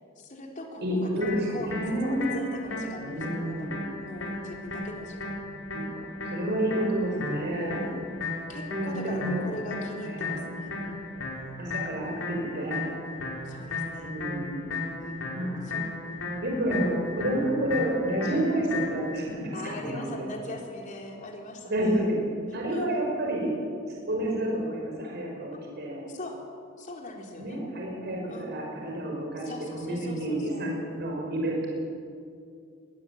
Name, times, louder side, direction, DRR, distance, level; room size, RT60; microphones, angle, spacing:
voice 1, 0.2-1.7 2.0-3.7 4.0-5.7 7.7-8.0 8.5-11.3 13.4-14.1 15.0-16.5 19.5-22.1 22.7-22.9 26.1-26.4 26.8-27.6 28.3-28.5 29.4-30.7, left 1 dB, 40° left, 1 dB, 4.0 m, -41 dB
voice 2, 0.8-2.3 3.0-3.8 5.7-5.9 6.2-7.9 8.7-9.5 10.0-10.4 11.6-12.8 14.0-14.8 15.3-15.6 16.4-20.2 21.7-22.2 22.5-23.5 24.1-26.0 27.4-31.7, right 1 dB, 55° right, -1 dB, 5.6 m, -29 dB
sound 1, 1.2-19.2, left 2 dB, 75° left, 5.8 m, -35 dB
22.0 x 19.5 x 8.9 m, 2.4 s
head